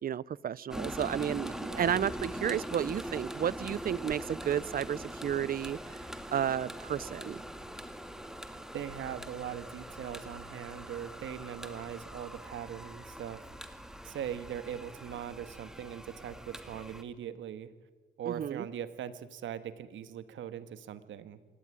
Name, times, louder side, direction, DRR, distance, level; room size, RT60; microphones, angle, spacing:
voice 1, 0.0-6.0 6.3-7.4 18.3-18.7, right 9 dB, 45° right, 22 dB, 0.6 m, -32 dB
sound 1, 0.7-17.0, equal, 5° right, 1.9 m, -43 dB
voice 2, 1.7-2.0 8.7-13.4 14.0-17.7 18.2-21.4, right 9 dB, 75° right, 12 dB, 1.6 m, -41 dB
26.5 x 13.5 x 10.0 m, 1.3 s
cardioid pair, 90°, 20 cm